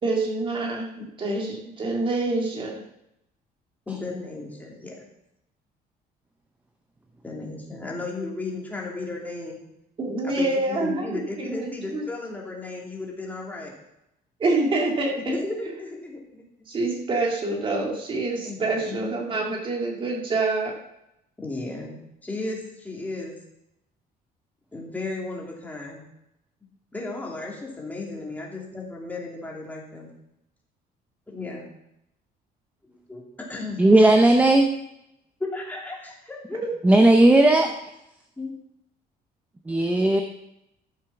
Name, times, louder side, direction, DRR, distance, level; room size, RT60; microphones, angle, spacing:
voice 1, 0.0-2.8 10.0-12.0 14.4-15.3 16.7-20.7 36.6-36.7, right 2 dB, 30° right, -1 dB, 2.3 m, -26 dB
voice 2, 3.9-5.0 7.2-9.6 10.2-13.7 15.2-16.4 18.4-19.1 21.4-23.4 24.7-26.0 26.9-30.1 31.3-31.7 32.8-34.1 35.5-36.6 38.4-38.5, left 2 dB, 10° left, -2 dB, 2.7 m, -35 dB
voice 3, 33.8-34.7 36.8-37.7 39.7-40.2, right 1 dB, 10° right, 4 dB, 0.7 m, -16 dB
13.5 x 7.3 x 5.9 m, 0.84 s
cardioid pair, 160°, 17 cm